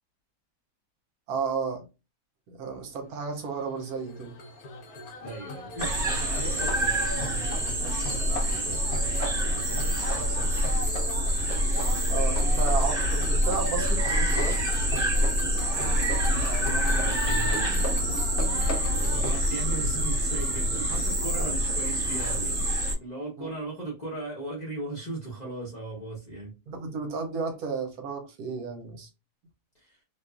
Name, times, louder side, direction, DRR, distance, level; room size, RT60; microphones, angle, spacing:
voice 1, 1.3-1.9 2.5-4.3 12.1-14.6 23.4-23.5 26.7-29.1, right 5 dB, 70° right, 1.1 m, -33 dB
sound 1, 3.2-19.4, left 1 dB, 70° left, 1.1 m, -38 dB
voice 2, 5.2-10.5 16.3-26.5 29.7-30.0, right 2 dB, 30° left, 0.9 m, -38 dB
sound 2, 5.8-23.0, equal, 35° right, 1.2 m, -26 dB
2.9 x 2.3 x 2.3 m
omnidirectional pair, 1.7 m